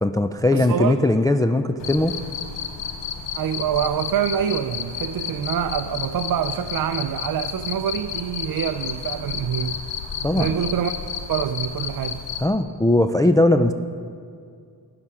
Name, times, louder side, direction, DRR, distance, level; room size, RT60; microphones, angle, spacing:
voice 1, 0.0-2.1 10.2-10.5 12.4-13.7, left 1 dB, 10° left, 7 dB, 0.3 m, -19 dB
voice 2, 0.5-1.1 3.3-9.8 10.3-10.9 11.3-12.2, right 9 dB, 55° right, 9 dB, 0.5 m, -25 dB
Cricket, 1.8-12.5, left 7 dB, 90° left, 0.8 m, -32 dB
11.5 x 8.9 x 4.8 m, 2.3 s
cardioid pair, 65°, 42 cm